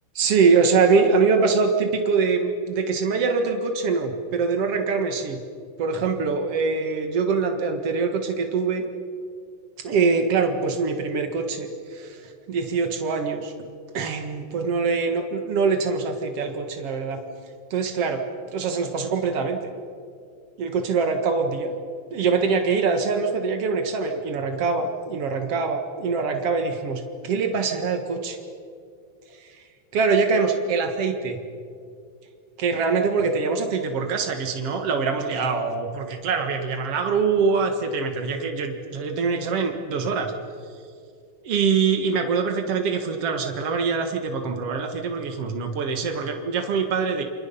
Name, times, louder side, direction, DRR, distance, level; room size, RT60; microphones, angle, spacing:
voice 1, 0.1-5.4 5.8-8.8 9.8-12.2 12.5-13.5 13.9-17.2 17.7-18.2 18.5-19.6 20.6-21.7 22.1-28.4 29.9-31.4 32.6-40.3 41.4-47.2, right 5 dB, 75° right, 5 dB, 1.4 m, -24 dB
28.5 x 27.0 x 5.6 m, 2.3 s
omnidirectional pair, 5.4 m